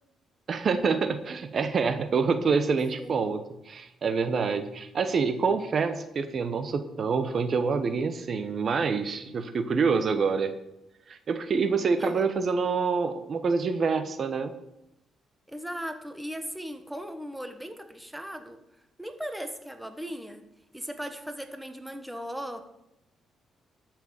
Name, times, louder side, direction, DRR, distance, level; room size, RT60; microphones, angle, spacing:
voice 1, 0.5-10.5 11.1-14.5, right 5 dB, 50° right, 10 dB, 0.9 m, -26 dB
voice 2, 12.0-12.5 15.5-18.6 19.0-20.4 20.7-22.6, equal, 5° right, 7 dB, 1.3 m, -38 dB
13.0 x 6.0 x 6.9 m, 0.86 s
cardioid pair, 90°, 0 cm